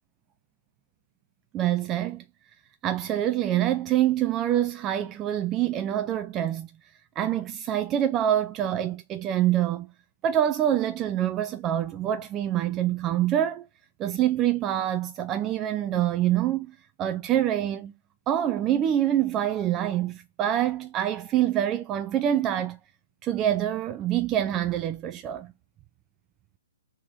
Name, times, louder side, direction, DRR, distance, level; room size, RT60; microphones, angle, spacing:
voice 1, 1.5-2.2 2.8-6.7 7.2-9.9 10.2-13.7 14.0-17.9 18.3-22.8 23.2-25.5, right 11 dB, 25° right, 0.3 m, -26 dB
4.7 x 2.9 x 2.3 m
figure-of-eight pair, 125°, 0 cm